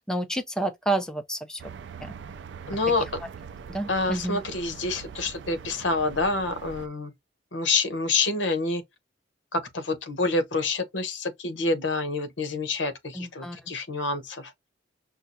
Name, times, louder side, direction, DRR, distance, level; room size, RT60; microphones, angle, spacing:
voice 1, 0.0-1.6 2.0-2.1 3.7-4.4 13.1-13.6, right 2 dB, 5° left, 0.4 m, -29 dB
sound 1, 1.6-6.9, right 6 dB, 70° right, 0.4 m, -42 dB
voice 2, 2.7-3.2 3.9-7.1 7.5-8.8 9.5-14.5, left 3 dB, 75° left, 0.9 m, -27 dB
5.5 x 2.4 x 2.6 m
head